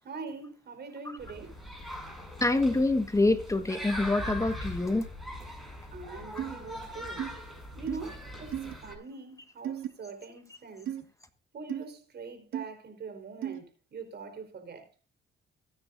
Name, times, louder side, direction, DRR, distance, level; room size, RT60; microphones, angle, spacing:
voice 1, 0.0-1.6 5.9-7.3 7.7-10.9 11.5-14.9, right 4 dB, 55° right, 4.5 m, -43 dB
sound 1, 1.2-9.0, left 1 dB, ahead, 6.4 m, -41 dB
voice 2, 2.4-5.0 6.3-6.4, left 2 dB, 15° left, 1.4 m, -26 dB
sound 2, 6.4-6.5 7.2-7.3 7.9-8.0 8.5-8.7 9.6-9.9 10.9-11.0 11.7-11.8 12.5-12.6 13.4-13.6, right 10 dB, 85° right, 1.8 m, -34 dB
23.5 x 9.6 x 2.6 m
cardioid pair, 90°, 20 cm